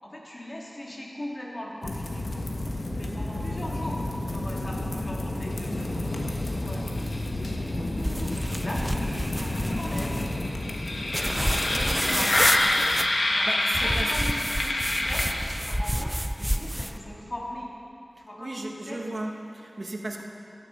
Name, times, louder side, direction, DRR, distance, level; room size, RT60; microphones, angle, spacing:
voice 1, 0.0-2.4 2.9-8.9 9.3-10.2 11.2-12.7 13.3-15.3 15.6-17.7 18.2-19.0, left 1 dB, 40° left, -3 dB, 2.9 m, -39 dB
sound 1, 1.8-15.7, left 1 dB, 85° left, 1.4 m, -28 dB
sound 2, 8.0-10.3 11.1-13.1 13.7-17.0, equal, ahead, 0.5 m, -29 dB
voice 2, 11.7-12.3 13.4-14.3 18.4-20.2, right 1 dB, 55° right, 1 dB, 1.5 m, -35 dB
14.5 x 11.0 x 5.5 m, 2.8 s
cardioid pair, 40°, 0 cm